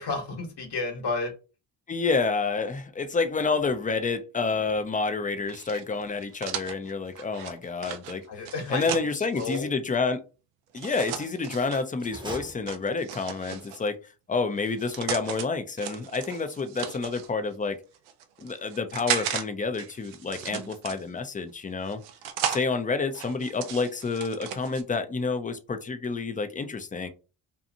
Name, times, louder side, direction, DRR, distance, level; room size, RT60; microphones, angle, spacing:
voice 1, 0.0-1.3 8.3-9.1 9.4-9.7 20.5-20.7, left 3 dB, 55° left, 3 dB, 1.2 m, -32 dB
voice 2, 1.9-10.2 10.7-14.0 14.3-17.8 18.4-22.0 22.5-27.1, left 4 dB, 15° left, 9 dB, 0.5 m, -29 dB
sound 1, 5.5-9.6 10.7-11.8 12.7-13.9 14.6-15.5 15.8-17.3 17.9-19.4 19.7-21.3 21.9-22.6 23.1-24.8, right 9 dB, 85° right, 0.5 m, -35 dB
sound 2, 11.9-13.3, right 2 dB, 10° right, 0.8 m, -41 dB
2.7 x 2.4 x 2.6 m, 0.32 s
hypercardioid pair, 50°, 49 cm